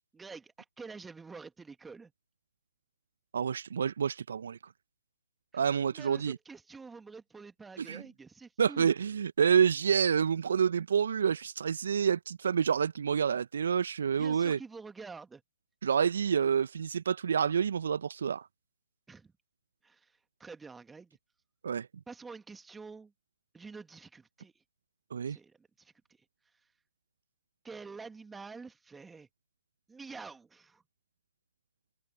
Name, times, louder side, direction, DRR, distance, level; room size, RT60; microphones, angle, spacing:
voice 1, 0.1-2.1 5.9-8.9 14.2-15.4 19.1-19.3 19.8-20.1 20.4-21.2 22.1-23.1 23.5-24.5 25.3-25.9 27.6-29.3 29.9-30.8, right 4 dB, 5° right, 2.3 m, -47 dB
voice 2, 3.3-4.6 5.5-6.4 7.8-8.0 8.6-14.6 15.8-18.5 21.6-21.9 25.1-25.4, right 7 dB, 60° right, 1.1 m, -28 dB
figure-of-eight pair, 130°, 0 cm